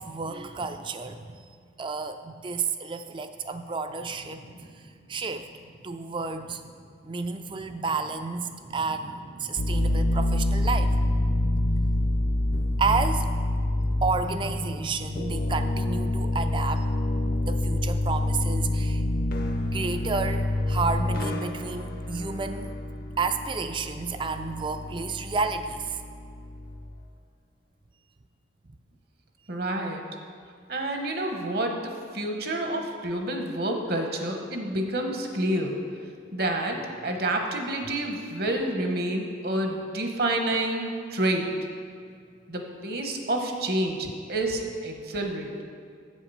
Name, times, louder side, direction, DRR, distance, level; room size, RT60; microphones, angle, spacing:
voice 1, 0.0-1.5 1.8-4.4 5.1-5.5 5.8-6.6 7.0-10.9 12.8-13.3 14.0-16.9 17.4-19.0 19.6-22.7 23.2-26.0 28.7-28.8, right 4 dB, 25° right, 9 dB, 0.3 m, -31 dB
sound 1, 3.9-14.9, right 1 dB, 75° right, 2.4 m, -47 dB
sound 2, 9.6-27.0, left 1 dB, 50° left, 0.6 m, -27 dB
voice 2, 29.5-30.0 30.7-35.8 36.3-41.5 42.5-45.6, right 1 dB, 55° right, 3 dB, 1.0 m, -29 dB
7.7 x 7.3 x 5.5 m, 2.2 s
head